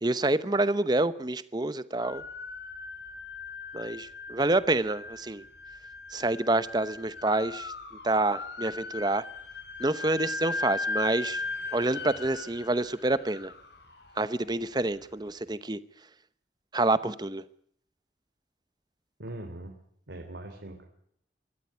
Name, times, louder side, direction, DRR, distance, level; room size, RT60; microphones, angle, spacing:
voice 1, 0.0-2.2 3.7-5.4 6.1-7.7 8.0-9.2 9.8-11.4 11.7-13.5 14.2-15.8 16.7-17.4, right 2 dB, 25° right, 14 dB, 0.9 m, -27 dB
sound 1, 2.0-15.1, left 3 dB, 75° left, 3.9 m, -38 dB
voice 2, 19.2-19.7 20.1-20.9, right 1 dB, 90° right, 3 dB, 3.1 m, -41 dB
24.0 x 14.0 x 9.6 m, 0.70 s
head